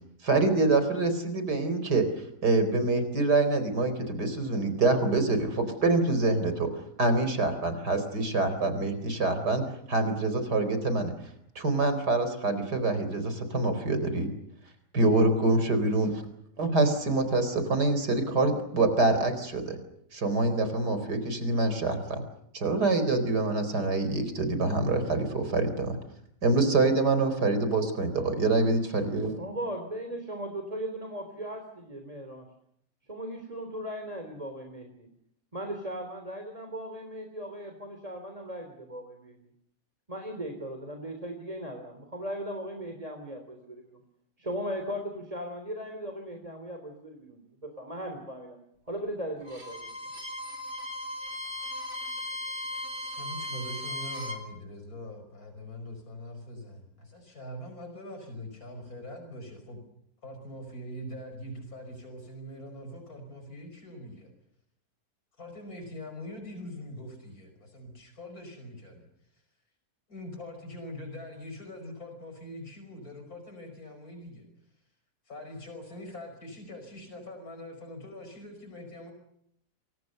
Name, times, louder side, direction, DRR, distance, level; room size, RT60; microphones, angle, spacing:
voice 1, 0.2-2.1 2.4-6.7 7.0-9.6 9.9-11.1 11.6-14.3 14.9-16.1 16.6-19.8 20.1-22.2 22.5-26.0 26.4-29.4, right 2 dB, 85° right, 10 dB, 4.8 m, -25 dB
voice 2, 29.3-32.5 33.1-35.1 35.5-39.4 40.1-44.0 44.4-48.6 48.9-49.9, equal, 20° right, 4 dB, 3.6 m, -38 dB
Bowed string instrument, 49.4-54.4, left 1 dB, 55° right, 4.1 m, -37 dB
voice 3, 53.2-59.8 60.2-64.3 65.4-69.1 69.3-69.4 70.1-74.5 75.3-79.1, left 1 dB, 60° left, 6 dB, 5.9 m, -43 dB
28.0 x 24.5 x 6.8 m, 0.72 s
omnidirectional pair, 1.7 m